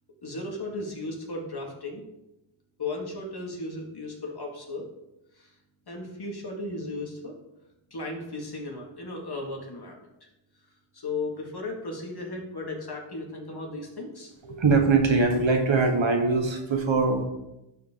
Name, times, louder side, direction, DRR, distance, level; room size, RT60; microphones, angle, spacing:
voice 1, 0.2-2.0 2.8-4.8 5.3-5.5 5.9-7.3 7.9-10.3 10.9-14.3, left 2 dB, 50° left, 0 dB, 2.2 m, -35 dB
voice 2, 14.4-17.2, right 4 dB, 65° right, 4 dB, 1.4 m, -22 dB
11.5 x 4.7 x 3.8 m, 0.90 s
cardioid pair, 50°, 50 cm